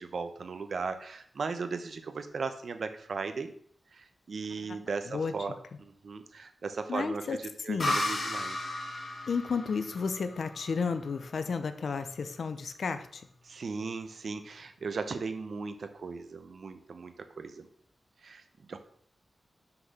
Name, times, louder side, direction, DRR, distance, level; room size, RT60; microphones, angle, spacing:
voice 1, 0.0-3.5 3.9-7.2 7.6-8.7 13.4-17.7 18.2-18.4 18.7-18.8, right 4 dB, 65° right, 9 dB, 0.9 m, -37 dB
voice 2, 6.9-7.4 7.7-8.0 9.3-13.3, left 5 dB, 75° left, 10 dB, 0.8 m, -32 dB
sound 1, 7.8-11.3, left 1 dB, 50° left, 2.5 m, -34 dB
6.0 x 5.9 x 6.6 m, 0.63 s
wide cardioid pair, 145°, 0 cm